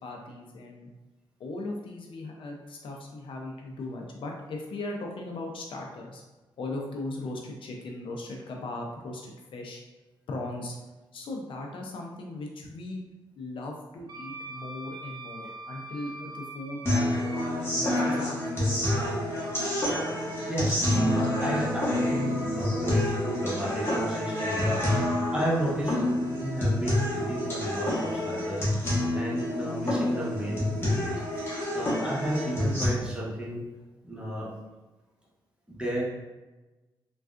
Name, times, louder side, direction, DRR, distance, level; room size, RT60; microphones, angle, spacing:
voice 1, 0.0-0.9 1.4-6.2 6.6-9.8 10.3-10.8 11.1-13.0 13.4-16.9 17.6-18.8, left 2 dB, 75° left, 0 dB, 0.5 m, -38 dB
Wind instrument woodwind instrument, 14.1-17.5, right 2 dB, 50° right, 0.4 m, -42 dB
sound 1, 16.9-32.9, left 1 dB, 25° left, 1.1 m, -28 dB
voice 2, 20.5-28.6 29.1-31.5 31.7-33.7 34.0-34.5 35.7-36.0, equal, 10° right, -6 dB, 1.1 m, -32 dB
3.4 x 2.3 x 2.4 m, 1.1 s
cardioid pair, 75°, 9 cm